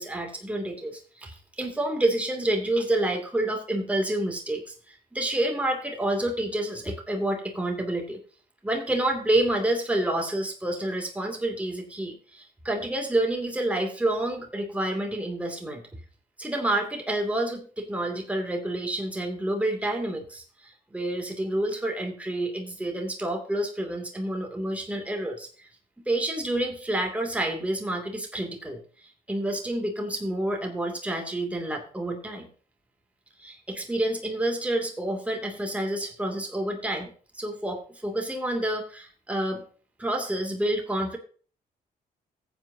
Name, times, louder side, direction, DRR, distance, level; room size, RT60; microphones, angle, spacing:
voice 1, 0.0-8.2 8.6-15.8 16.4-25.7 26.1-32.5 33.4-39.6 40.0-41.2, right 1 dB, 10° right, 2 dB, 2.6 m, -29 dB
14.5 x 8.1 x 2.8 m, 0.41 s
supercardioid pair, 70°, 17 cm